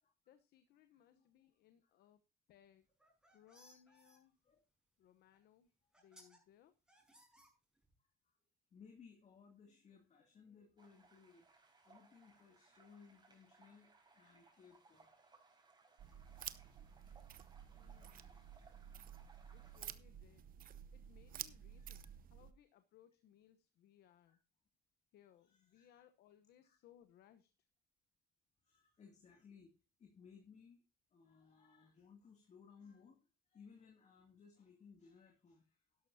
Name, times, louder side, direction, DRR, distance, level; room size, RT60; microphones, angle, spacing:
voice 1, 0.3-2.2 2.5-2.9 3.3-4.3 5.0-5.7 6.0-6.7 17.7-18.7 19.5-20.5 20.9-24.4 25.1-27.5, left 10 dB, 75° left, 10 dB, 1.0 m, -67 dB
voice 2, 0.9-1.3 4.4-4.6 8.0-8.4 8.7-15.1 15.9-16.9 17.3-18.3 19.4-19.8 21.8-22.1 24.3-24.4 25.5-26.0 26.6-26.8 28.6-29.7 30.0-30.8 31.1-35.8, left 6 dB, 40° left, 2 dB, 2.5 m, -63 dB
sound 1, 2.9-4.2 5.3-5.4 5.9-6.4 6.9-7.9, equal, 5° right, 5.2 m, -65 dB
sound 2, 10.8-19.9, right 3 dB, 25° right, 5.1 m, -68 dB
sound 3, 16.0-22.5, right 10 dB, 55° right, 0.8 m, -52 dB
12.0 x 11.5 x 2.8 m, 0.28 s
cardioid pair, 110°, 17 cm